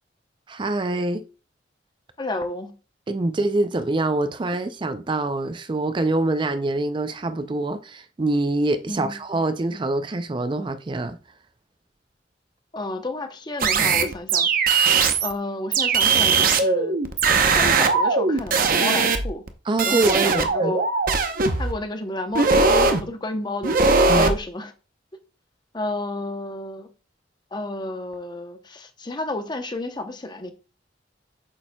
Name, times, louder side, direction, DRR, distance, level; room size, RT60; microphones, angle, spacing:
voice 1, 0.5-1.2 3.1-11.2 19.7-20.7 24.1-24.3, right 2 dB, 25° right, 0.4 m, -25 dB
voice 2, 2.2-2.7 8.9-9.1 12.7-14.5 15.2-17.0 17.5-19.4 19.8-20.8 21.5-24.7 25.7-26.9 27.5-30.5, left 2 dB, 25° left, 0.8 m, -31 dB
sound 1, 13.6-15.3 15.7-19.5 19.8-21.7 22.3-23.0 23.6-24.4, right 4 dB, 50° right, 0.8 m, -20 dB
8.6 x 7.0 x 2.2 m
head